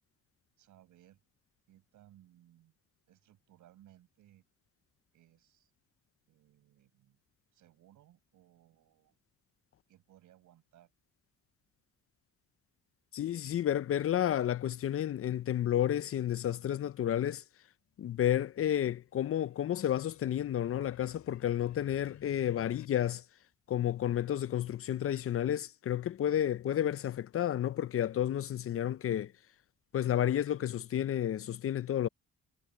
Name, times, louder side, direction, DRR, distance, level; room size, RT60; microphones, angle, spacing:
voice 1, 0.6-1.2 1.7-2.7 3.1-4.4 5.1-5.7 6.3-7.2 7.5-9.2 9.9-10.9, right 13 dB, 80° right, 7.2 m, -62 dB
voice 2, 13.1-17.4 18.0-23.2 23.7-29.3 29.9-32.1, left 11 dB, 50° left, 0.6 m, -31 dB
sound 1, 17.9-22.9, left 10 dB, 70° left, 6.0 m, -59 dB
cardioid pair, 90°, 30 cm